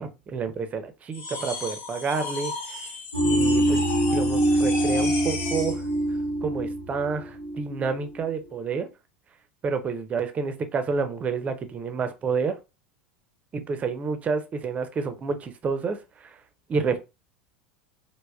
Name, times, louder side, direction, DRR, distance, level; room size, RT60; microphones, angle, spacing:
voice 1, 0.0-2.8 3.2-5.8 6.4-8.9 9.6-12.6 13.5-16.4 16.7-17.0, right 5 dB, 25° right, 0.5 m, -29 dB
sound 1, 1.1-5.8, left 3 dB, 45° left, 0.7 m, -34 dB
sound 2, 3.1-8.2, right 1 dB, 80° right, 0.6 m, -24 dB
3.3 x 2.1 x 2.3 m
figure-of-eight pair, 80°, 5 cm